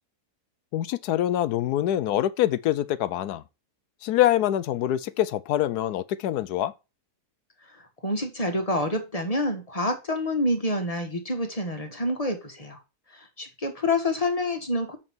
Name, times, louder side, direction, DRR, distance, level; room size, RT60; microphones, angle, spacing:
voice 1, 0.7-3.4 4.0-6.7, left 12 dB, 80° left, 1.2 m, -25 dB
voice 2, 8.0-12.8 13.1-15.0, left 1 dB, 25° left, 1.5 m, -27 dB
7.3 x 5.9 x 4.5 m
omnidirectional pair, 1.7 m